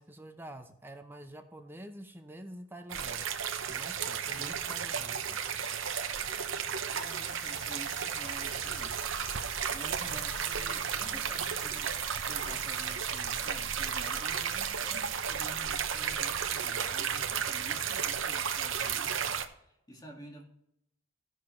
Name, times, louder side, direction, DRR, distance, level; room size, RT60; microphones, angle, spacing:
voice 1, 0.0-3.3 3.7-5.4 10.0-10.2, right 1 dB, 10° right, 6 dB, 0.7 m, -47 dB
sound 1, 2.9-19.4, right 7 dB, 65° right, 0.8 m, -33 dB
voice 2, 4.2-4.8 6.5-9.0 9.7-12.0 12.2-20.4, equal, 20° left, 0 dB, 1.9 m, -50 dB
sound 2, 6.9-14.7, left 3 dB, 55° left, 3.3 m, -50 dB
15.0 x 6.4 x 3.1 m, 0.80 s
head